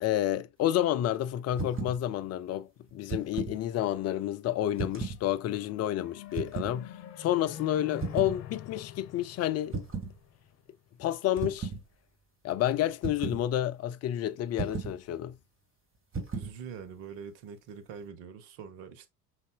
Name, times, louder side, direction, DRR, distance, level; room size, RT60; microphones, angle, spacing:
voice 1, 0.0-9.8 11.0-11.7 12.4-15.4, left 12 dB, 35° left, 0.4 m, -30 dB
sound 1, 1.5-2.0 2.9-3.6 4.8-5.2 6.3-6.8 8.0-8.4 9.7-10.1 11.4-11.8 13.0-13.4 14.6-15.0 16.1-16.6, right 4 dB, 25° right, 1.9 m, -35 dB
sound 2, 5.1-10.6, left 10 dB, 80° left, 0.7 m, -45 dB
voice 2, 16.3-19.1, right 7 dB, 60° right, 1.2 m, -44 dB
5.3 x 4.2 x 2.3 m
hypercardioid pair, 65°, 47 cm